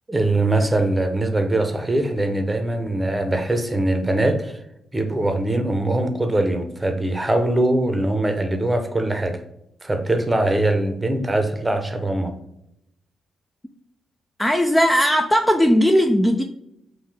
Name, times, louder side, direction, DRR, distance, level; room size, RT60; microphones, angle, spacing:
voice 1, 0.1-4.6 4.9-9.4 9.8-12.3, right 1 dB, 15° right, 6 dB, 0.8 m, -22 dB
voice 2, 14.4-16.4, equal, 10° left, 4 dB, 0.4 m, -17 dB
3.8 x 2.7 x 4.1 m, 0.80 s
cardioid pair, 85°, 0 cm